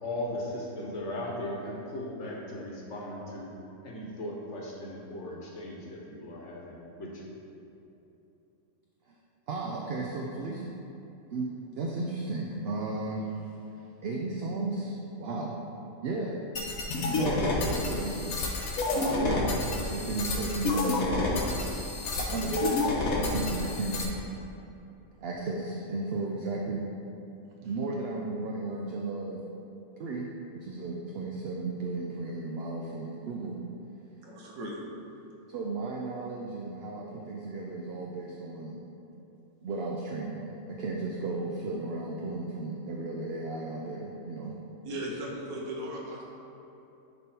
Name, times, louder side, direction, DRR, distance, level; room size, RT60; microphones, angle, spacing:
voice 1, 0.0-3.5 3.8-7.3, left 1 dB, 55° left, -3 dB, 1.4 m, -37 dB
voice 2, 9.5-10.7 11.3-13.4 14.0-15.6 16.0-16.4 17.0-18.4 18.9-19.4 19.9-21.0 22.1-22.8 23.2-24.0 25.2-26.9 27.6-29.4 30.0-33.6 35.5-38.8 39.6-44.5, right 3 dB, 60° right, -1 dB, 0.7 m, -34 dB
sound 1, 16.6-24.0, left 2 dB, 75° left, 1.4 m, -29 dB
voice 3, 34.2-34.8 44.8-46.2, right 1 dB, 80° right, -3 dB, 1.5 m, -37 dB
10.0 x 3.6 x 4.4 m, 2.9 s
omnidirectional pair, 1.5 m